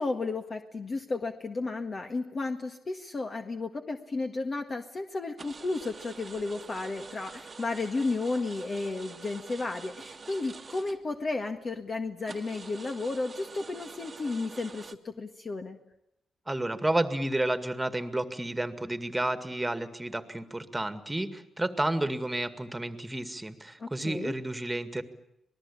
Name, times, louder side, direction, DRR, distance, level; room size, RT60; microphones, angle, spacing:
voice 1, 0.0-15.8 23.8-24.3, left 3 dB, 40° left, 5 dB, 1.7 m, -33 dB
sound 1, 5.4-11.4 11.8-11.9 12.3-15.0, right 4 dB, 40° right, 1.4 m, -46 dB
voice 2, 16.5-25.0, right 1 dB, 10° right, 10 dB, 2.1 m, -31 dB
26.5 x 20.0 x 8.6 m, 0.81 s
cardioid pair, 100°, 0 cm